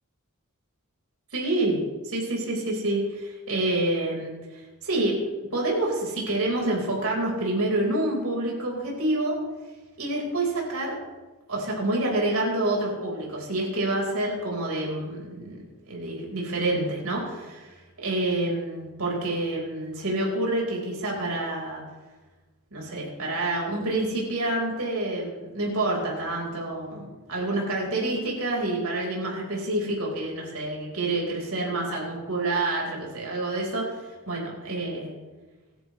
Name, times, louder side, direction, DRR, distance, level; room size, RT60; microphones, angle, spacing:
voice 1, 1.3-1.8 2.0-5.2 5.5-9.4 10.0-11.0 11.5-21.8 22.7-35.1, right 2 dB, 65° right, -2 dB, 4.7 m, -28 dB
26.5 x 11.0 x 3.3 m, 1.2 s
head